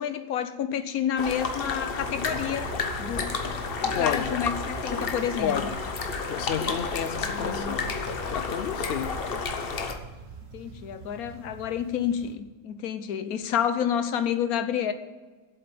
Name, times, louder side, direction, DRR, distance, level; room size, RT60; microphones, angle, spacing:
voice 1, 0.0-2.7 3.0-3.4 3.8-5.6 7.2-7.8 10.5-14.9, left 8 dB, 80° left, 1.3 m, -29 dB
sound 1, 1.2-9.9, left 4 dB, 45° left, 1.1 m, -31 dB
sound 2, 2.0-12.4, right 4 dB, 50° right, 1.2 m, -44 dB
voice 2, 3.9-4.3 5.4-5.8 6.3-7.9 8.3-9.1, left 9 dB, 60° left, 0.6 m, -30 dB
8.0 x 7.7 x 8.6 m
omnidirectional pair, 1.5 m